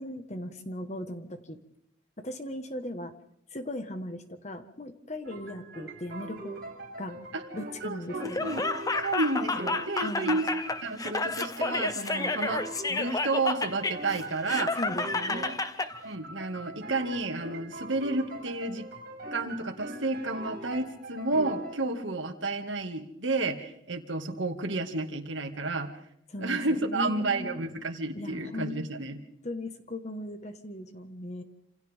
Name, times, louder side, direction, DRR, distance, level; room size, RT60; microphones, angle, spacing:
voice 1, 0.0-1.6 2.2-3.1 3.5-6.6 7.0-7.2 7.5-8.6 10.0-10.4 14.8-15.6 26.3-27.6 28.1-28.8 29.4-31.4, left 1 dB, 35° left, 8 dB, 1.6 m, -38 dB
sound 1, 5.2-10.0 10.3-15.6 15.9-21.9, right 2 dB, 55° right, 5.4 m, -42 dB
voice 2, 7.8-8.6 9.0-14.8 15.3-15.4 16.0-18.9 19.3-25.9 26.4-29.2, right 2 dB, 75° right, 5 dB, 2.3 m, -31 dB
Laughter, 8.2-15.9, left 3 dB, 20° left, 0.9 m, -31 dB
28.0 x 27.5 x 3.7 m, 0.76 s
head